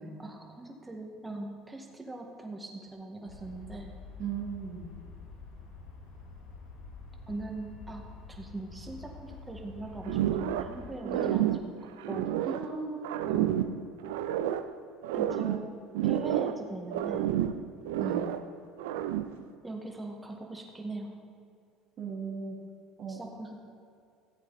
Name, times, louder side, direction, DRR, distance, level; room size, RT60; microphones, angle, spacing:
voice 1, 0.2-3.9 7.3-11.7 12.1-12.3 15.1-15.6 16.0-17.3 19.6-21.1 23.1-23.6, right 2 dB, 15° right, 1 dB, 1.9 m, -41 dB
sound 1, 3.2-10.9, left 4 dB, 75° left, 2.1 m, -47 dB
voice 2, 4.2-4.9 11.0-11.4 12.5-13.7 18.0-18.3 22.0-22.6 23.0-23.2, right 5 dB, 50° right, -3 dB, 2.4 m, -37 dB
sound 2, 10.1-10.8 11.0-12.7 13.0-14.7 15.0-16.6 16.9-18.5 18.8-19.4, right 11 dB, 85° right, 0.5 m, -30 dB
15.0 x 8.3 x 4.2 m, 2.4 s
supercardioid pair, 95°, 0 cm